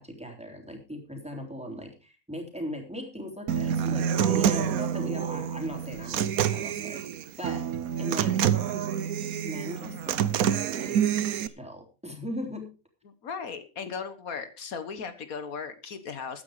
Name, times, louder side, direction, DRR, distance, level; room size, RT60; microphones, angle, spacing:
voice 1, 0.0-7.0 7.4-7.7 8.0-8.4 9.4-12.7, equal, 5° right, 3 dB, 3.3 m, -38 dB
Human voice / Acoustic guitar, 3.5-11.5, right 9 dB, 80° right, 1.3 m, -27 dB
voice 2, 13.2-16.4, left 6 dB, 80° left, 11 dB, 1.8 m, -37 dB
14.5 x 9.7 x 4.9 m, 0.34 s
omnidirectional pair, 1.5 m